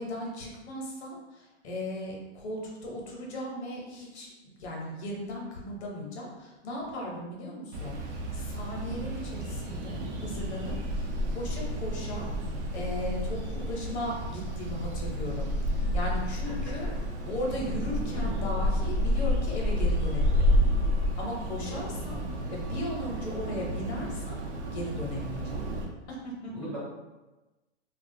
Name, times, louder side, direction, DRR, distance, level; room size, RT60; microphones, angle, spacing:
voice 1, 0.0-4.3 4.6-12.3 12.7-16.9 17.3-20.6 21.2-22.2 22.5-24.4 24.7-25.6 26.1-26.5, left 1 dB, 60° left, -1 dB, 0.9 m, -37 dB
sound 1, 7.7-25.8, equal, 65° right, 0.7 m, -30 dB
voice 2, 26.4-26.8, right 1 dB, 25° right, -9 dB, 0.3 m, -40 dB
2.4 x 2.3 x 2.6 m, 1.1 s
hypercardioid pair, 150°, 36 cm